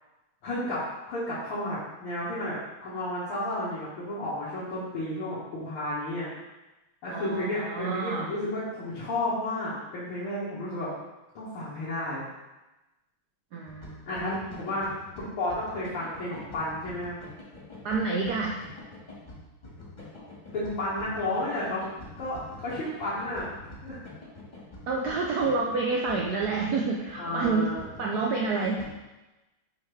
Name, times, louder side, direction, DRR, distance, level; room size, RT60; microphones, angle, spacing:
voice 1, 0.4-6.3 7.0-10.9 11.4-12.3 14.1-14.9 15.2-17.1 20.5-21.9 22.2-23.5 23.8-24.0 27.2-27.8, left 1 dB, 80° left, -10 dB, 2.2 m, -32 dB
voice 2, 7.1-8.3 13.5-14.4 17.8-18.6 24.9-27.7 28.0-28.8, right 4 dB, 90° right, 0 dB, 0.8 m, -28 dB
sound 1, 13.7-28.9, left 2 dB, 20° left, 1.6 m, -45 dB
6.4 x 5.1 x 3.2 m, 1.1 s
omnidirectional pair, 2.3 m